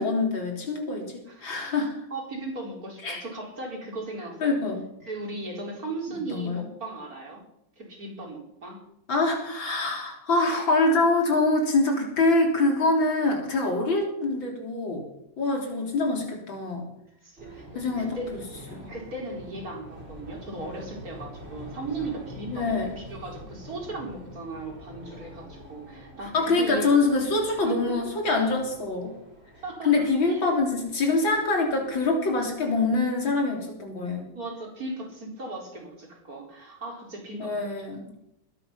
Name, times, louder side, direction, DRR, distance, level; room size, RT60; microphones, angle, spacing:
voice 1, 0.0-1.1 1.4-1.9 3.0-3.2 4.4-4.8 6.3-6.7 9.1-15.1 15.4-16.9 17.7-18.2 18.7-18.9 22.5-22.9 26.3-29.1 29.9-34.3 37.4-38.1, left 3 dB, 80° left, 2 dB, 4.2 m, -25 dB
voice 2, 1.3-1.8 2.1-4.6 5.0-7.4 7.8-8.8 17.2-26.9 27.5-28.1 29.6-30.6 34.3-37.7, right 2 dB, 45° right, -1 dB, 4.8 m, -37 dB
sound 1, 17.4-32.9, equal, 30° right, 4.2 m, -46 dB
21.5 x 10.5 x 5.8 m, 0.79 s
omnidirectional pair, 2.1 m